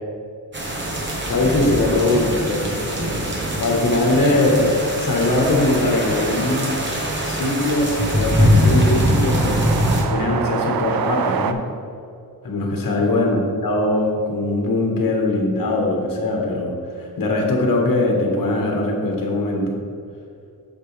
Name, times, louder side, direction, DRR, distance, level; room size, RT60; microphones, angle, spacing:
sound 1, 0.5-10.0, equal, 30° right, 1.1 m, -22 dB
voice 1, 1.3-2.8 3.6-6.8 7.2-9.6 10.1-11.7 12.4-19.8, left 2 dB, 70° left, 0 dB, 1.5 m, -21 dB
sound 2, 4.1-4.2 4.3-4.4 4.7-11.5, right 7 dB, 75° right, 0.5 m, -29 dB
8.0 x 6.8 x 3.3 m, 2.5 s
wide cardioid pair, 175°, 35 cm